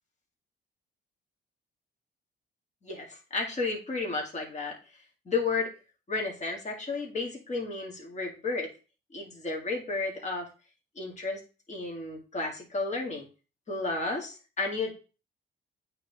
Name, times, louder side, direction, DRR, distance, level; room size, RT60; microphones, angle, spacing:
voice 1, 2.8-4.8 5.3-5.7 6.1-8.7 9.1-10.5 11.0-11.4 11.7-13.3 13.7-14.9, left 3 dB, 35° left, 0 dB, 2.1 m, -32 dB
8.7 x 3.4 x 3.4 m, 0.34 s
cardioid pair, 90°, 20 cm